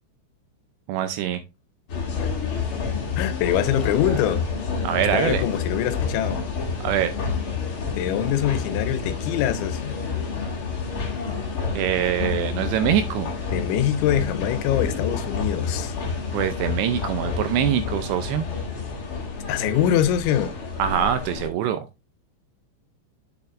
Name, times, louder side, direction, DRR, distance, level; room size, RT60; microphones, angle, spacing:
voice 1, 0.9-1.4 4.8-5.4 6.8-7.1 11.8-13.3 16.3-18.5 20.8-21.8, right 10 dB, 80° right, 2.5 m, -24 dB
sound 1, 1.9-21.5, left 5 dB, 40° left, 1.9 m, -29 dB
voice 2, 3.2-4.4 5.1-6.4 7.9-10.0 13.5-16.0 19.5-20.5, left 10 dB, 85° left, 3.1 m, -24 dB
8.0 x 6.7 x 2.5 m
omnidirectional pair, 5.4 m